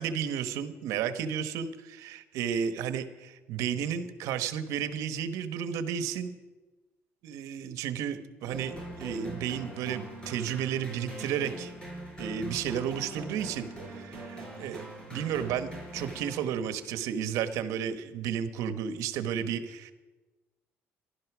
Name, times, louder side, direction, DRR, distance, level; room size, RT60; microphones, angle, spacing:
voice 1, 0.0-6.3 7.2-11.7 12.2-19.9, right 8 dB, 85° right, 10 dB, 1.1 m, -33 dB
sound 1, 8.5-16.8, right 1 dB, 20° left, 4.6 m, -42 dB
14.5 x 12.0 x 6.1 m, 1.2 s
cardioid pair, 145°, 5 cm